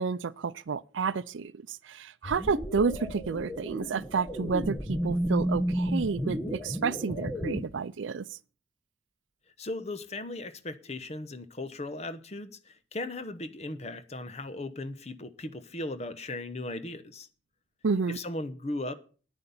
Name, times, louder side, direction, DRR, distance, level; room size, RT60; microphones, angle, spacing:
voice 1, 0.0-8.3 17.8-18.2, right 5 dB, 80° right, 0.5 m, -30 dB
sound 1, 2.2-7.6, equal, 15° left, 1.3 m, -32 dB
voice 2, 9.6-17.3 18.1-18.9, left 2 dB, 35° left, 1.0 m, -37 dB
9.8 x 9.7 x 7.0 m
head